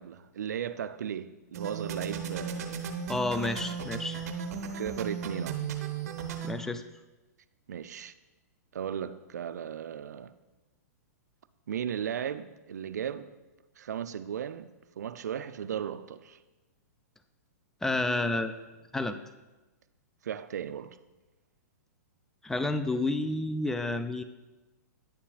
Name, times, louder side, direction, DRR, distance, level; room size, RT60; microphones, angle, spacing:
voice 1, 0.0-3.0 4.8-5.6 7.7-8.1 8.7-10.3 11.7-13.3 13.8-16.4 20.2-21.0, right 8 dB, 80° right, 0.4 m, -36 dB
sound 1, 1.5-6.5, right 6 dB, 60° right, 0.8 m, -36 dB
voice 2, 3.1-4.3 6.4-6.9 17.8-18.5 18.9-19.2 22.4-24.2, left 2 dB, 5° left, 0.3 m, -30 dB
9.6 x 6.9 x 2.3 m
hypercardioid pair, 125°, 9 cm